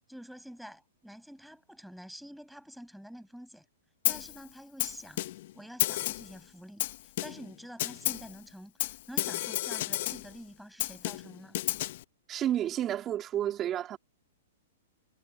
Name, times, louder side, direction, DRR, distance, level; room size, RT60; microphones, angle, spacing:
voice 1, 0.1-3.7 4.1-5.2 5.5-11.6, equal, ahead, 7.1 m, -48 dB
Snare drum, 4.0-4.4 4.8-5.5 5.8-6.4 6.8-7.5 7.8-8.3 8.8-10.3 10.8-12.0, left 15 dB, 55° left, 1.3 m, -32 dB
voice 2, 12.3-14.0, right 11 dB, 25° right, 3.6 m, -31 dB
hypercardioid pair, 140°, 0 cm